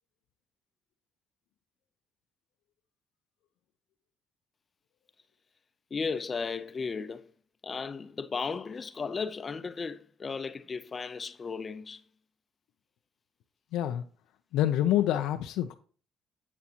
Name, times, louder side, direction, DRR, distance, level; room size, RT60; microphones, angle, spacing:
voice 1, 5.9-7.2 7.6-12.0, left 5 dB, 30° left, 0.7 m, -35 dB
voice 2, 13.7-14.0 14.5-15.8, left 12 dB, 85° left, 0.5 m, -26 dB
9.6 x 8.3 x 2.9 m
cardioid pair, 110°, 0 cm